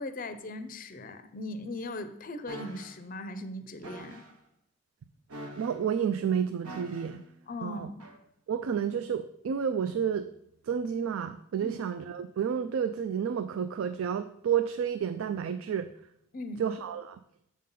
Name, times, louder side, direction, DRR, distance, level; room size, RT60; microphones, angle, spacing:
voice 1, 0.0-4.2 7.5-8.0 11.6-11.8 16.3-16.6, left 2 dB, 40° left, 10 dB, 0.5 m, -39 dB
sound 1, 2.5-2.9 3.8-4.3 5.3-5.9 6.6-7.2 8.0-8.2, right 1 dB, 85° right, 1.2 m, -44 dB
voice 2, 5.6-7.2 7.6-7.9 8.5-10.3 10.6-15.9 16.6-17.2, right 7 dB, 65° right, 11 dB, 0.3 m, -30 dB
7.4 x 3.8 x 5.5 m, 0.77 s
head